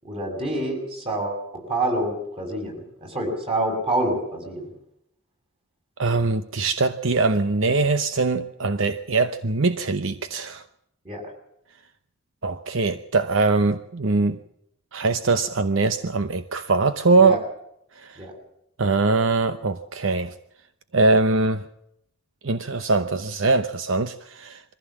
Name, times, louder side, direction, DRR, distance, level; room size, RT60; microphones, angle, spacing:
voice 1, 0.0-4.7 11.0-11.2 17.1-17.4 18.2-18.3, right 1 dB, 25° right, 6.6 m, -27 dB
voice 2, 6.0-10.6 12.4-14.4 14.9-17.4 18.0-18.2 18.8-20.3 20.9-21.7 22.4-24.6, right 3 dB, 65° right, 0.9 m, -22 dB
23.5 x 15.5 x 7.4 m
head